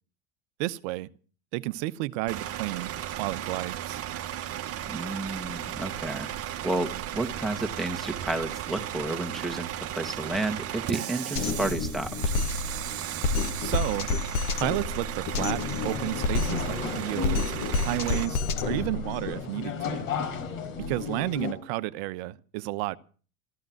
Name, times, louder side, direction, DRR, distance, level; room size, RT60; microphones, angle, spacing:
voice 1, 0.6-1.1 1.5-2.9 3.2-4.0 13.6-14.1 14.6-17.5 17.8-20.0 20.8-23.0, right 19 dB, 55° right, 1.0 m, -32 dB
Bus / Idling, 2.3-18.3, right 11 dB, 35° right, 1.3 m, -35 dB
voice 2, 4.9-6.3 6.6-12.1, right 2 dB, ahead, 2.1 m, -31 dB
Drum kit, 11.4-19.3, left 4 dB, 50° left, 2.0 m, -30 dB
sound 1, 15.8-21.5, left 6 dB, 70° left, 4.7 m, -34 dB
14.0 x 12.0 x 7.7 m
hypercardioid pair, 90°, 41 cm